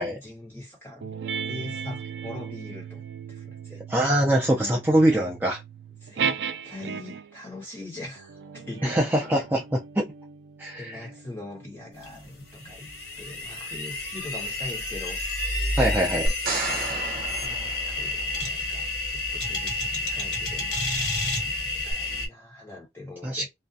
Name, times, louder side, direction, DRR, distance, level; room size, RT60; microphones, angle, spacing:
voice 1, 0.1-3.0 3.3-3.8 4.6-4.8 6.0-6.4 6.6-9.1 10.8-12.9 13.2-15.2 16.9-21.1 21.4-23.5, left 2 dB, 15° left, 1.1 m, -42 dB
sound 1, 1.0-7.4 8.2-13.1, right 7 dB, 85° right, 0.3 m, -36 dB
voice 2, 3.9-5.6 8.8-10.1 10.6-11.1 15.8-16.3 23.2-23.4, right 1 dB, 10° right, 0.4 m, -23 dB
sound 2, 12.0-22.3, left 2 dB, 85° left, 1.0 m, -30 dB
sound 3, 16.3-18.6 21.9-22.0, right 2 dB, 55° right, 0.7 m, -31 dB
2.4 x 2.2 x 2.6 m
head